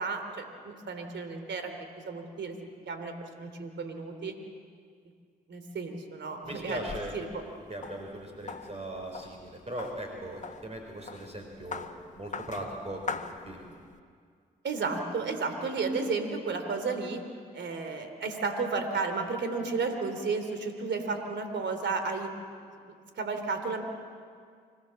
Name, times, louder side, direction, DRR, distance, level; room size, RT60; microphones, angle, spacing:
voice 1, 0.0-1.7 2.0-2.6 2.9-4.3 5.5-6.9 7.1-7.4 14.6-17.2 17.5-22.3 23.1-23.8, right 4 dB, 65° right, 6 dB, 3.1 m, -33 dB
sound 1, 6.4-14.0, left 5 dB, 35° left, 1.5 m, -43 dB
voice 2, 6.4-7.3 7.7-11.9 12.1-13.7, right 1 dB, 30° right, 1 dB, 4.1 m, -39 dB
25.5 x 17.0 x 7.5 m, 2.1 s
hypercardioid pair, 45°, 21 cm